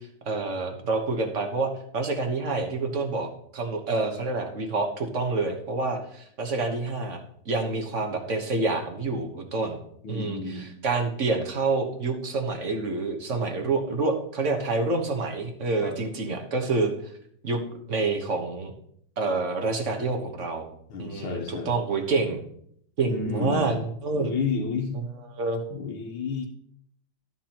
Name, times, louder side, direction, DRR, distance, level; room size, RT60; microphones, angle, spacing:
voice 1, 0.2-9.8 10.1-17.1 17.4-17.6 17.9-18.7 19.2-20.7 21.0-22.4 23.0-24.3 24.9-25.6, right 3 dB, 45° right, 3 dB, 1.2 m, -28 dB
voice 2, 10.0-10.7 15.8-15.9 20.9-21.8 23.0-23.7 24.1-25.0 25.7-26.5, left 4 dB, 70° left, 0 dB, 1.7 m, -31 dB
13.0 x 7.3 x 2.9 m, 0.69 s
omnidirectional pair, 2.3 m